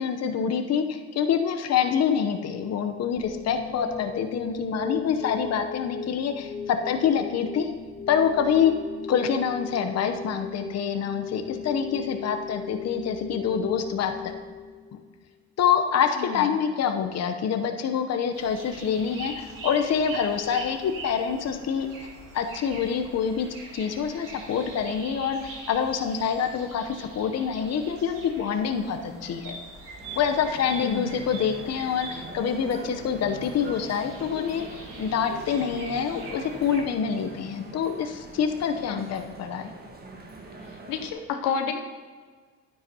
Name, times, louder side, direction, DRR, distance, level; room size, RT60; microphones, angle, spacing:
voice 1, 0.0-7.7 8.1-8.7 9.1-14.3 15.6-21.9 22.3-23.5 23.7-29.6 30.2-34.6 35.0-39.7, left 7 dB, 50° left, 7 dB, 0.9 m, -26 dB
sound 1, 3.2-15.2, left 6 dB, 20° left, 0.4 m, -37 dB
voice 2, 16.2-16.6 30.7-31.2 38.9-39.1 40.6-41.8, left 6 dB, 75° left, 5 dB, 0.8 m, -31 dB
sound 2, 18.3-36.8, right 2 dB, 80° right, 2.3 m, -43 dB
sound 3, 30.0-41.1, right 2 dB, 30° right, 1.6 m, -43 dB
11.5 x 9.6 x 2.9 m, 1.5 s
supercardioid pair, 80°, 34 cm